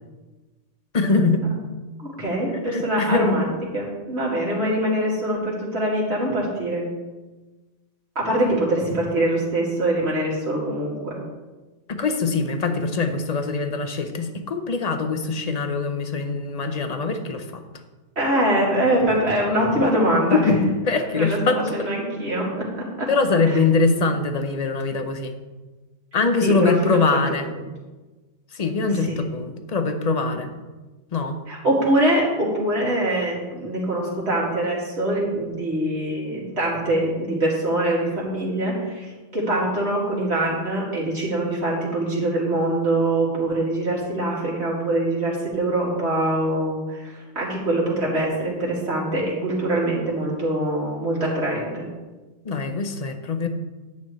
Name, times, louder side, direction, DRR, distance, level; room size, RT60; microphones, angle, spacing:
voice 1, 0.9-1.5 2.7-3.4 11.9-17.6 20.3-21.9 23.1-25.4 26.1-27.5 28.5-30.5 31.1-31.4 52.4-53.5, left 3 dB, 35° left, 7 dB, 0.8 m, -23 dB
voice 2, 2.0-6.9 8.2-11.2 18.2-20.5 20.9-23.1 23.4-23.6 26.4-27.0 28.8-29.2 31.5-51.9, right 1 dB, 60° right, -5 dB, 2.7 m, -24 dB
10.5 x 8.9 x 3.2 m, 1.2 s
omnidirectional pair, 1.3 m